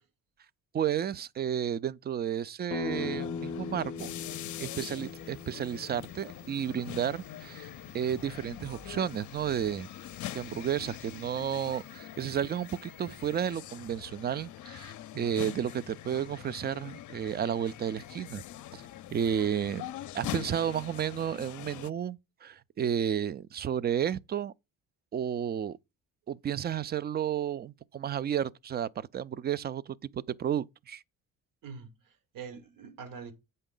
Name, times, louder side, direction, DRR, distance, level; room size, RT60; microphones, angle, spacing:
voice 1, 0.7-4.1 4.6-7.7 7.9-9.9 10.3-18.4 18.7-18.8 19.1-19.9 20.1-24.5 25.1-25.8 26.3-31.0, right 9 dB, 30° right, 0.4 m, -32 dB
sound 1, 2.7-8.3, left 3 dB, 20° left, 0.7 m, -40 dB
sound 2, 2.9-21.9, left 13 dB, 55° left, 0.5 m, -44 dB
sound 3, 4.9-13.5, right 1 dB, 85° right, 3.5 m, -59 dB
voice 2, 31.6-33.3, right 6 dB, 65° right, 1.5 m, -44 dB
8.0 x 5.4 x 3.8 m
supercardioid pair, 70°, 36 cm